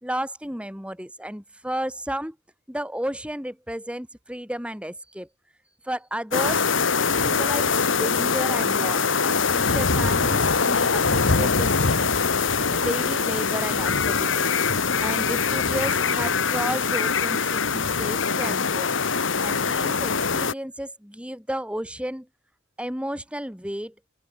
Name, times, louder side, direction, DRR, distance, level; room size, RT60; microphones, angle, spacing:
voice 1, 0.0-2.4 2.7-5.3 5.8-6.7 7.0-12.1 12.7-14.4 15.0-18.9 19.4-22.3 22.8-23.9, right 1 dB, 5° right, 4.1 m, -33 dB
sound 1, 6.3-20.5, left 5 dB, 75° left, 1.5 m, -23 dB
open air
head